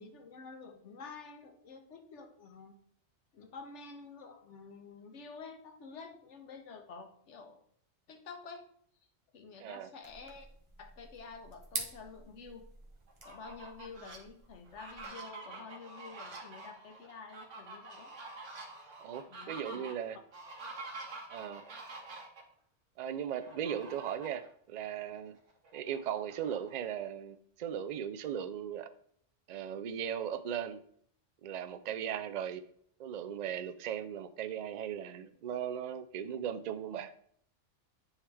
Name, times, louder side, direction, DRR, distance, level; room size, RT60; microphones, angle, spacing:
voice 1, 0.0-2.8 3.3-7.6 8.1-8.6 9.3-10.5 10.8-12.7 13.2-18.1 19.3-19.9, left 4 dB, 75° left, 6 dB, 1.2 m, -49 dB
voice 2, 9.6-9.9 19.0-20.2 21.3-21.6 23.0-25.4 25.7-28.9 29.5-30.8 31.4-32.6 33.0-37.1, right 9 dB, 65° right, 11 dB, 0.4 m, -38 dB
sound 1, 10.0-15.1, right 2 dB, 25° right, 1.0 m, -46 dB
Fowl, 13.1-14.2 14.7-22.4 23.4-24.5 24.9-25.0 25.4-27.1, right 3 dB, 80° right, 1.5 m, -47 dB
9.8 x 3.6 x 3.4 m, 0.64 s
omnidirectional pair, 1.2 m